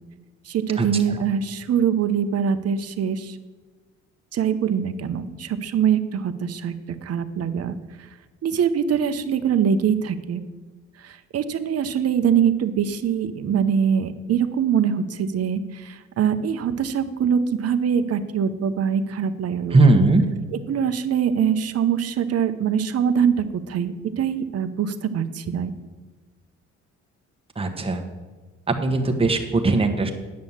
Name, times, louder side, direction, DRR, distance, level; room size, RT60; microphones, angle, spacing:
voice 1, 0.5-3.4 4.3-7.7 8.4-10.4 11.0-20.0 20.5-25.7, right 7 dB, 55° right, 11 dB, 0.8 m, -23 dB
voice 2, 19.7-20.2 27.6-28.0 28.7-30.1, right 2 dB, 20° right, 4 dB, 1.2 m, -19 dB
9.6 x 6.4 x 7.2 m, 1.3 s
cardioid pair, 90°, 30 cm